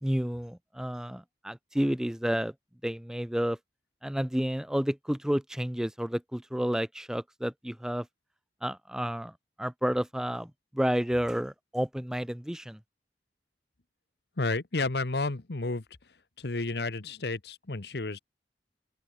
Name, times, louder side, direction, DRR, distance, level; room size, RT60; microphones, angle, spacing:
voice 1, 0.0-2.5 2.8-3.6 4.0-8.1 8.6-12.8, equal, 5° right, 0.4 m, -31 dB
voice 2, 14.4-15.8 16.4-18.2, left 3 dB, 70° left, 1.1 m, -31 dB
head